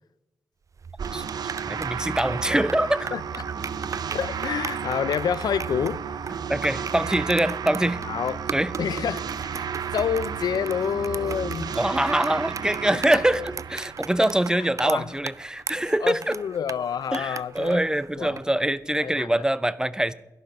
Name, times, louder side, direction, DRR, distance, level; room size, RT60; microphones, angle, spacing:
sound 1, 0.7-18.5, right 5 dB, 55° right, 0.4 m, -38 dB
sound 2, 1.0-15.3, right 7 dB, 85° right, 0.7 m, -33 dB
voice 1, 1.7-3.1 6.5-8.0 8.5-8.7 11.8-16.4 17.1-20.1, right 1 dB, 10° right, 0.6 m, -24 dB
voice 2, 4.1-6.0 8.0-8.4 8.8-11.8 14.5-15.1 15.7-17.8 18.2-18.4 19.0-19.4, left 7 dB, 85° left, 0.4 m, -28 dB
12.5 x 11.5 x 5.3 m
cardioid pair, 55°, 7 cm